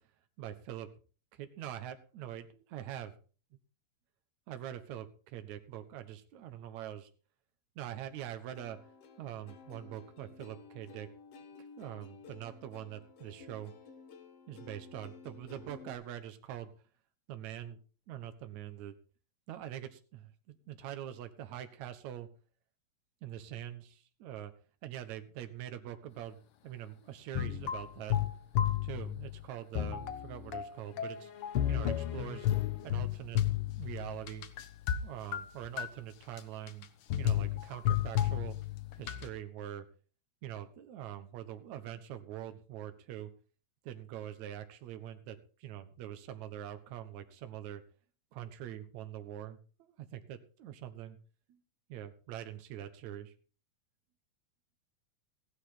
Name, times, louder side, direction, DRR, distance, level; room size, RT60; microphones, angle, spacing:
voice 1, 0.4-0.9 1.3-3.1 4.5-7.1 7.8-8.8 9.2-11.1 11.8-13.7 14.5-16.7 17.3-17.8 18.1-19.0 19.5-22.3 23.2-24.5 24.8-28.2 28.8-31.3 31.7-32.5 32.8-33.4 33.7-34.5 35.0-36.9 37.2-38.6 39.0-39.9 40.4-43.3 43.8-47.8 48.3-51.2 51.5-51.6 51.9-53.3, right 11 dB, 65° right, 9 dB, 2.4 m, -44 dB
Plucked string instrument, 8.5-15.9, left 5 dB, 55° left, 2.3 m, -54 dB
sound 1, 27.4-29.4 29.8-35.0 35.3-35.9 36.4-36.5 36.7-36.8 37.1-39.3, left 11 dB, 90° left, 1.2 m, -32 dB
15.5 x 11.5 x 3.9 m, 0.36 s
omnidirectional pair, 4.0 m